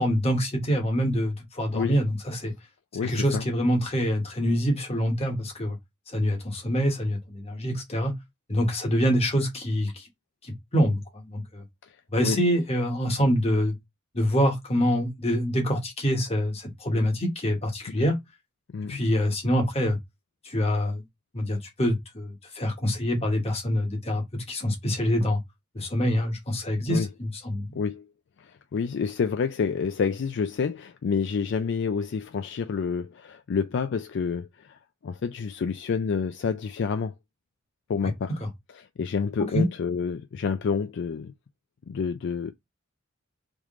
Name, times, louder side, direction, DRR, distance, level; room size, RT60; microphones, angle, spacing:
voice 1, 0.0-2.5 3.0-5.8 6.1-8.1 8.5-10.0 10.7-11.6 12.1-13.7 14.1-18.2 18.8-20.0 20.4-21.0 21.3-25.4 25.7-27.7 38.4-38.5 39.4-39.6, equal, 30° left, 1.2 m, -25 dB
voice 2, 2.9-3.5 11.8-11.9 12.2-12.4 17.9-18.0 18.7-19.0 26.9-27.1 27.7-28.1 28.4-37.1 37.9-38.4 38.7-41.3 41.9-42.5, left 5 dB, 60° left, 0.4 m, -28 dB
3.6 x 3.1 x 3.6 m
head